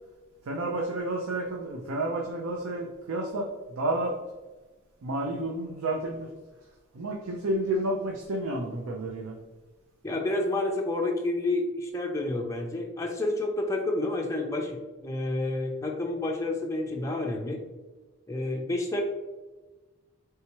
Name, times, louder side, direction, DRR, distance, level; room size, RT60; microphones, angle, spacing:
voice 1, 0.4-4.2 5.0-6.3 6.9-9.4, right 1 dB, 90° right, 0 dB, 0.5 m, -30 dB
voice 2, 10.0-17.6 18.3-19.0, left 2 dB, 15° left, 0 dB, 0.4 m, -29 dB
4.5 x 3.4 x 2.9 m, 1.2 s
head